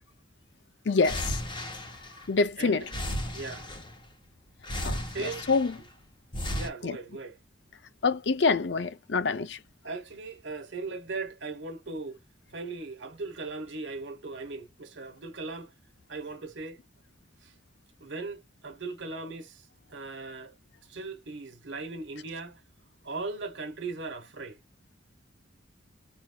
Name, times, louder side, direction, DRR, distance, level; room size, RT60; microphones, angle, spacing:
voice 1, 0.9-1.4 2.3-2.8 4.8-5.0 5.5-5.7 6.8-7.0 8.0-9.6, left 4 dB, 65° left, 0.5 m, -25 dB
sound 1, 1.0-2.5 2.8-4.1 4.6-5.9 6.3-6.7, equal, 25° left, 1.0 m, -35 dB
voice 2, 2.6-2.9 3.3-3.7 5.1-5.4 6.5-7.4 9.8-12.2 12.5-15.7 16.1-16.8 17.4-17.5 18.0-20.5 20.9-22.6 23.0-24.6, right 3 dB, 70° right, 1.2 m, -38 dB
4.3 x 2.6 x 2.3 m
head